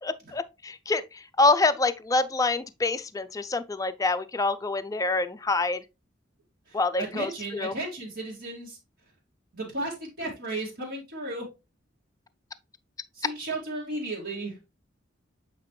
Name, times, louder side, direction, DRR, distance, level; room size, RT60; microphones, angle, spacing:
voice 1, 0.0-5.8 6.7-7.7, left 3 dB, 20° left, 0.4 m, -26 dB
voice 2, 6.7-8.8 9.5-11.4 13.1-14.6, right 2 dB, 60° right, 2.1 m, -34 dB
8.1 x 4.2 x 3.1 m
head